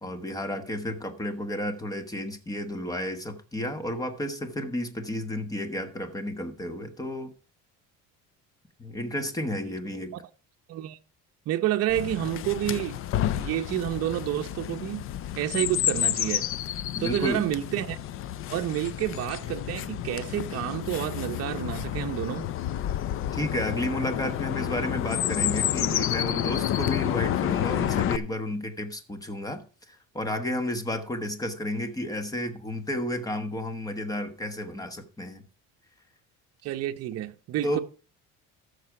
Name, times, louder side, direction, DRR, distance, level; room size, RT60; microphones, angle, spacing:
voice 1, 0.0-7.3 8.8-10.2 16.9-17.4 23.3-35.4 37.6-37.8, left 1 dB, 10° left, 1.3 m, -32 dB
voice 2, 11.5-13.0 13.3-15.1 15.4-16.5 17.0-18.0 18.5-22.5 36.6-37.8, right 13 dB, 50° right, 0.8 m, -29 dB
Chirp tweet, 11.9-28.2, left 12 dB, 45° left, 0.5 m, -30 dB
14.0 x 6.7 x 4.9 m
cardioid pair, 155°, 32 cm